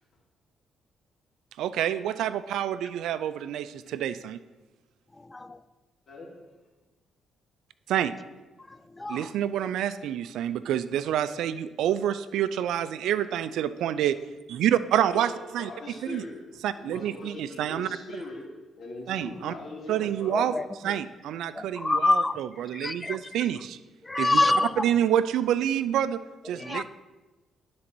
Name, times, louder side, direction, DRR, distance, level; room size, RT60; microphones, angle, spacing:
voice 1, 1.6-4.4 7.9-8.1 9.1-14.2 14.5-15.7 16.0-16.2 16.6-17.9 19.1-19.5 19.9-20.5 20.8-23.8 24.2-24.4 24.8-26.9, right 10 dB, 80° right, 14 dB, 0.3 m, -28 dB
voice 2, 5.2-5.6 8.7-9.3 20.3-20.9 21.5-22.4 22.7-23.5 24.0-24.9 26.5-26.9, left 2 dB, 20° left, 14 dB, 0.4 m, -27 dB
voice 3, 15.1-16.3 16.8-18.4 18.8-20.3, left 2 dB, 50° left, -3 dB, 2.5 m, -41 dB
10.5 x 4.0 x 6.1 m, 1.2 s
cardioid pair, 90°, 0 cm